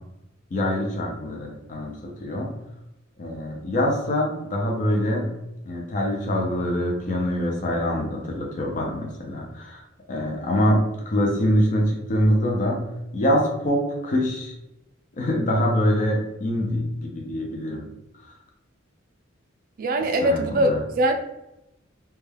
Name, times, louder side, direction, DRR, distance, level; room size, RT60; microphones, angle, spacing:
voice 1, 0.5-1.9 2.2-2.5 3.2-5.3 5.7-9.8 10.1-12.8 13.1-14.5 15.2-17.8 18.2-18.4 20.2-20.8, equal, 40° left, -1 dB, 0.4 m, -24 dB
voice 2, 19.8-21.2, right 1 dB, 45° right, 5 dB, 0.4 m, -22 dB
2.2 x 2.2 x 3.2 m, 0.89 s
head